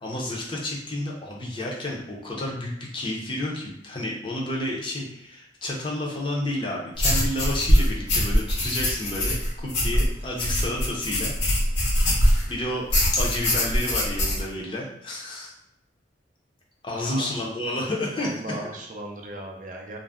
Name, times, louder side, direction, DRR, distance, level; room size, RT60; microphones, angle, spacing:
voice 1, 0.0-11.3 12.5-12.9 13.2-15.5 16.8-18.3, left 1 dB, 30° left, -2 dB, 0.5 m, -30 dB
sound 1, 7.0-12.5 12.9-14.4, equal, 85° left, 1.0 m, -22 dB
voice 2, 18.2-20.0, right 1 dB, 45° right, 1 dB, 0.4 m, -37 dB
2.4 x 2.0 x 3.4 m, 0.80 s
head